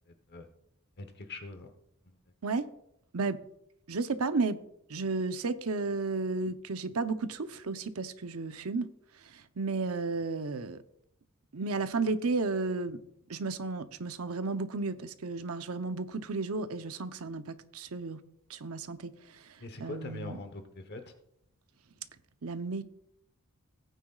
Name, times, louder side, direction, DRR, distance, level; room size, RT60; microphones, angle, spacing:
voice 1, 1.0-1.7 19.6-21.1, left 2 dB, 50° left, 1.0 m, -42 dB
voice 2, 3.9-4.6 4.9-8.9 9.3-10.8 11.5-13.0 13.3-18.2 18.5-19.5 19.8-20.4 22.4-22.8, right 3 dB, 75° right, 0.7 m, -33 dB
18.0 x 9.2 x 2.4 m
head